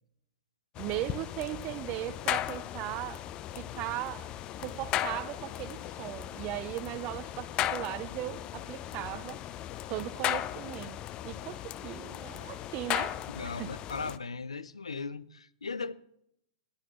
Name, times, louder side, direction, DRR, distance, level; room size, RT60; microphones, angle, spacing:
sound 1, 0.8-14.2, left 12 dB, 30° left, 0.5 m, -36 dB
voice 1, 0.8-3.2 3.6-9.4 9.9-11.0 11.2-13.2 13.4-13.7, right 15 dB, 35° right, 0.7 m, -38 dB
voice 2, 13.3-15.9, left 4 dB, 90° left, 0.6 m, -38 dB
18.5 x 11.5 x 3.1 m
hypercardioid pair, 120°, 3 cm